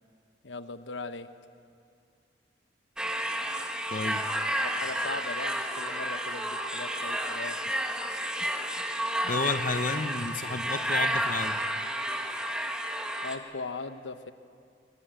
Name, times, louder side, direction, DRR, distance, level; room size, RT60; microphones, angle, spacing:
voice 1, 0.4-1.3 4.6-7.6 13.2-14.3, left 3 dB, 85° left, 10 dB, 1.0 m, -39 dB
sound 1, 3.0-13.4, equal, 5° right, 1.5 m, -31 dB
voice 2, 3.9-4.2 8.4-8.5 9.2-11.6, left 3 dB, 45° left, 9 dB, 0.8 m, -31 dB
22.5 x 19.5 x 9.0 m, 2.3 s
head